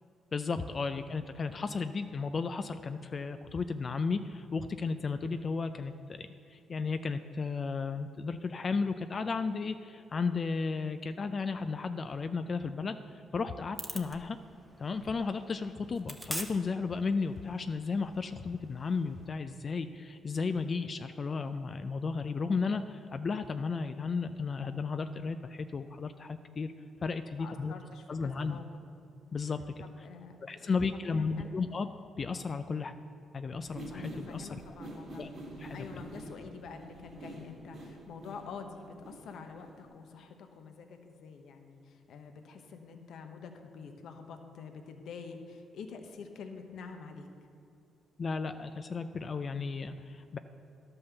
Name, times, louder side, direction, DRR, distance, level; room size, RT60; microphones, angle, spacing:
voice 1, 0.3-14.4 14.8-26.7 27.0-27.7 28.1-28.6 29.3-29.6 30.4-31.9 32.2-33.0 33.3-34.6 35.2-35.3 35.6-35.9 48.2-50.4, left 4 dB, 40° left, 9 dB, 0.4 m, -34 dB
sound 1, 13.8-19.3, right 1 dB, 10° right, 0.9 m, -46 dB
voice 2, 27.4-28.8 29.8-31.6 33.9-35.2 35.7-47.3, left 5 dB, 70° left, 5 dB, 0.9 m, -47 dB
sound 2, 33.6-39.9, right 1 dB, 60° right, 2.7 m, -47 dB
11.5 x 5.4 x 6.8 m, 2.5 s
cardioid pair, 90°, 0 cm